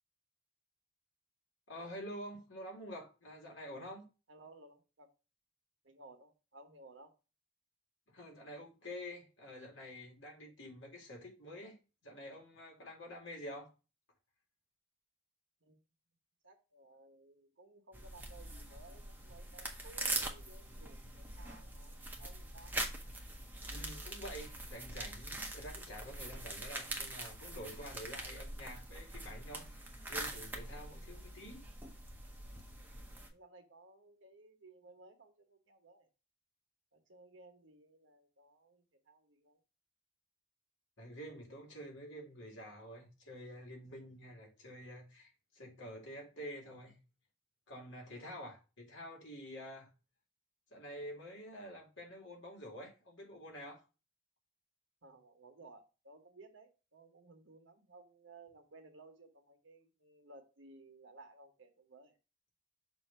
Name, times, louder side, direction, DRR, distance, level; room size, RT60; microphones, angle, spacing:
voice 1, 1.7-4.0 8.1-11.8 12.0-13.7 23.7-31.6 41.0-47.0 47.7-49.9 50.7-53.8, equal, 70° left, 2.2 m, -48 dB
voice 2, 4.3-5.1 5.8-7.1 15.6-15.8 16.4-22.8 30.9-31.1 32.7-32.9 33.3-36.1 36.9-39.6 48.1-48.4 55.0-62.2, right 2 dB, 70° right, 1.1 m, -59 dB
sound 1, 17.9-33.3, right 1 dB, 10° right, 0.8 m, -43 dB
6.3 x 2.8 x 5.4 m
head